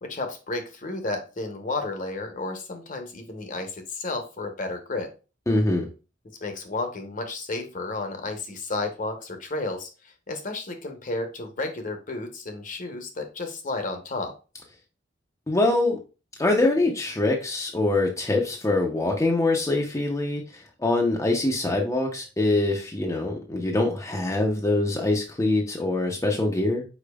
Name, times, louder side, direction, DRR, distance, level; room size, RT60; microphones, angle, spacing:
voice 1, 0.0-5.1 6.4-9.9 10.3-14.3, left 2 dB, 45° left, 6 dB, 0.9 m, -32 dB
voice 2, 5.5-5.9 15.5-16.0 16.4-26.8, left 2 dB, 15° left, 0 dB, 0.6 m, -24 dB
5.0 x 4.4 x 2.3 m, 0.32 s
head